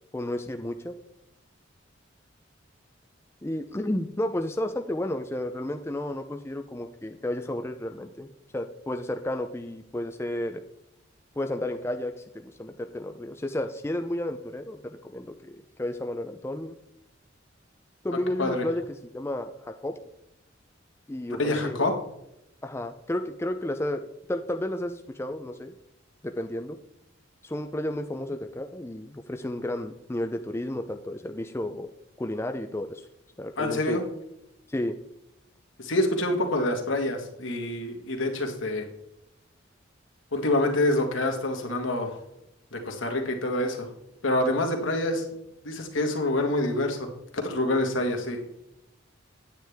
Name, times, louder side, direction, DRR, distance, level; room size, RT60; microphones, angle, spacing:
voice 1, 0.1-0.9 3.4-10.6 11.4-16.8 18.0-18.8 19.1-20.0 21.1-21.9 22.6-24.0 24.3-25.7 26.2-26.8 27.4-31.9 32.2-33.1 33.4-34.0 34.7-35.0, left 1 dB, 10° left, 6 dB, 0.4 m, -32 dB
voice 2, 21.4-21.9 33.6-34.0 35.8-38.9 40.3-42.2 42.7-43.9 44.2-45.3 45.6-48.4, left 1 dB, 75° left, 3 dB, 1.6 m, -26 dB
9.3 x 9.1 x 3.5 m, 0.84 s
head